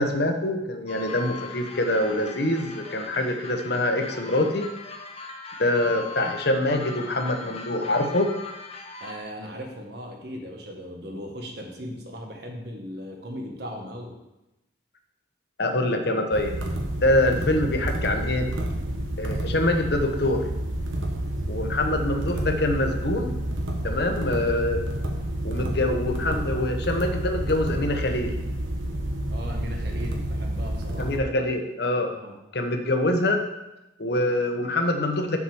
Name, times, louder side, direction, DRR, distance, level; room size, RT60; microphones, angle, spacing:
voice 1, 0.0-4.7 5.6-8.3 15.6-16.6 17.0-18.5 19.2-20.5 21.5-23.3 23.8-24.8 25.4-28.3 31.0-32.1 32.5-33.4 34.0-35.4, left 1 dB, 55° left, 5 dB, 1.0 m, -24 dB
sound 1, 0.9-9.2, left 4 dB, 30° left, 0.8 m, -40 dB
voice 2, 9.0-14.1 29.3-31.1 32.1-32.4, equal, 55° right, 1 dB, 1.5 m, -37 dB
sound 2, 16.3-31.2, right 1 dB, 85° right, 1.3 m, -29 dB
7.1 x 4.9 x 7.0 m, 0.96 s
head